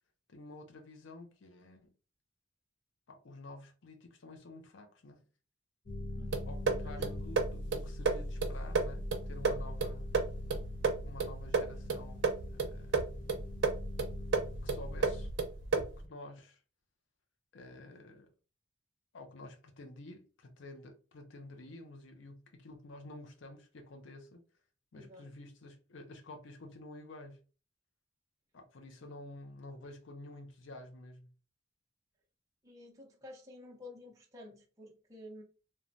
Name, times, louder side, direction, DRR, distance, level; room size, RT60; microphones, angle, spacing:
voice 1, 0.3-1.9 3.1-5.3 6.5-10.1 11.0-13.0 14.6-15.3 15.7-16.6 17.5-18.3 19.1-24.4 24.9-27.4 28.5-31.3, left 2 dB, 90° left, 0.6 m, -50 dB
sound 1, 5.9-15.3, left 1 dB, 45° left, 0.6 m, -41 dB
voice 2, 6.2-6.5 6.8-7.0 24.9-25.3 32.6-35.4, left 1 dB, 20° right, 0.6 m, -51 dB
sound 2, 6.3-16.0, right 4 dB, 80° right, 0.5 m, -34 dB
3.1 x 2.2 x 2.5 m
head